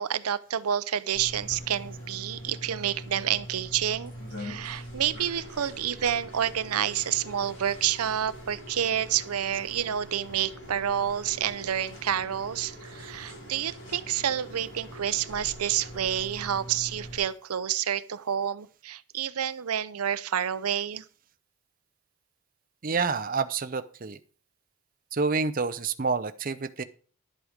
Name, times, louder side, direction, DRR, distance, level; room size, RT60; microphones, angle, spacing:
voice 1, 0.0-4.1 4.4-21.0, right 9 dB, 90° right, 15 dB, 0.6 m, -29 dB
sound 1, 1.1-17.2, equal, 65° left, 6.6 m, -43 dB
voice 2, 22.8-24.2 25.1-26.8, right 4 dB, 40° right, 11 dB, 0.6 m, -28 dB
11.0 x 8.0 x 5.0 m, 0.41 s
head